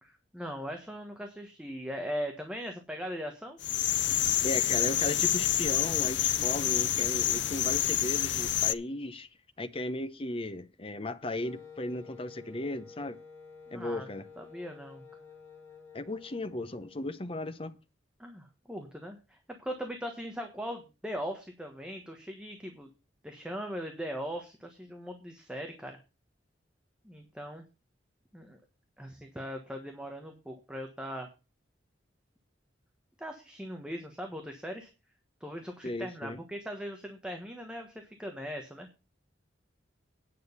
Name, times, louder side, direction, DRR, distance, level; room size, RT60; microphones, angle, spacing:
voice 1, 0.0-3.6 13.7-14.1 14.4-15.0 18.2-22.9 23.2-26.0 27.0-27.6 28.3-28.6 29.0-31.3 33.2-34.9 35.4-38.9, equal, 5° right, 1.3 m, -39 dB
sound 1, 3.6-8.7, left 12 dB, 70° left, 0.6 m, -28 dB
voice 2, 4.4-9.3 9.6-13.2 13.7-14.2 15.9-17.7 35.8-36.4, left 1 dB, 30° left, 0.8 m, -36 dB
sound 2, 5.0-8.5, right 5 dB, 40° right, 1.5 m, -54 dB
Wind instrument woodwind instrument, 11.4-17.1, left 5 dB, 10° left, 2.4 m, -51 dB
9.6 x 6.3 x 6.7 m
head